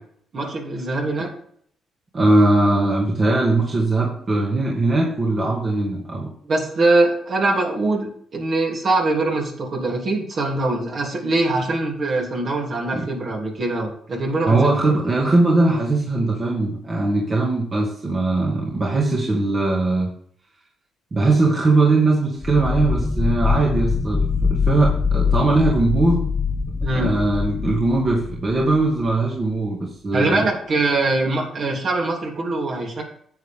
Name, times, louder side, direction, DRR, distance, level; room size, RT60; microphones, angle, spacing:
voice 1, 0.3-1.3 6.5-14.9 26.8-27.1 30.1-33.0, right 2 dB, 50° right, 0 dB, 3.2 m, -22 dB
voice 2, 2.1-6.3 12.9-13.1 14.5-20.1 21.1-26.2 26.9-30.4, right 2 dB, 35° right, -2 dB, 2.2 m, -20 dB
sound 1, 22.4-29.1, left 5 dB, 15° left, 0.7 m, -23 dB
10.5 x 8.2 x 3.7 m, 0.63 s
cardioid pair, 90°, 0 cm